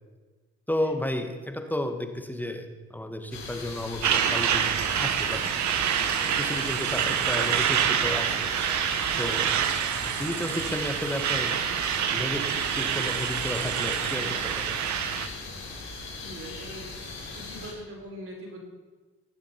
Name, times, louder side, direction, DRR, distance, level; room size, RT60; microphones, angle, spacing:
voice 1, 0.7-4.7 5.0-5.4 6.1-8.3 9.2-9.5 10.0-11.5 12.1-12.4 12.7-14.8, left 1 dB, 5° left, 6 dB, 1.4 m, -32 dB
sound 1, 3.3-17.7, left 3 dB, 60° left, 4.3 m, -39 dB
Truck, 4.0-15.3, right 8 dB, 70° right, 1.1 m, -27 dB
voice 2, 16.2-16.9 17.3-18.6, equal, 45° right, -2 dB, 5.1 m, -42 dB
19.0 x 7.2 x 5.7 m, 1.3 s
cardioid pair, 90°, 30 cm